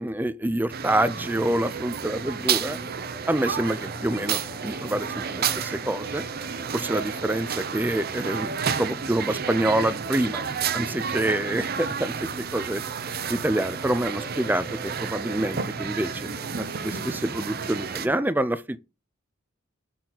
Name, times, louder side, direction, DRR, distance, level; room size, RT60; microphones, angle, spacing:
voice 1, 0.0-2.8 3.3-6.2 6.7-10.4 10.7-12.8 13.3-16.3 16.6-18.8, right 1 dB, 10° right, 0.5 m, -27 dB
sound 1, 0.7-18.1, right 7 dB, 50° right, 0.7 m, -31 dB
sound 2, 0.9-18.2, equal, 15° left, 1.8 m, -48 dB
sound 3, 8.2-18.2, equal, 30° left, 1.7 m, -48 dB
7.5 x 4.3 x 4.0 m
head